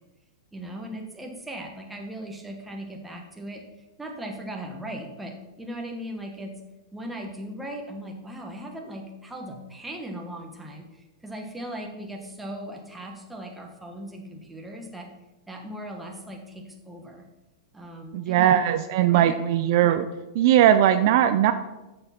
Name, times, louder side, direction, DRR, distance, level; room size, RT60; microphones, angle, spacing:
voice 1, 0.5-3.6 4.0-6.6 6.9-15.1 15.5-17.3 17.7-18.6 19.0-19.4, right 1 dB, 5° right, 1 dB, 1.1 m, -38 dB
voice 2, 18.1-20.1 20.3-21.5, right 11 dB, 45° right, 9 dB, 0.4 m, -19 dB
7.0 x 6.6 x 5.8 m, 1.0 s
supercardioid pair, 160°, 2 cm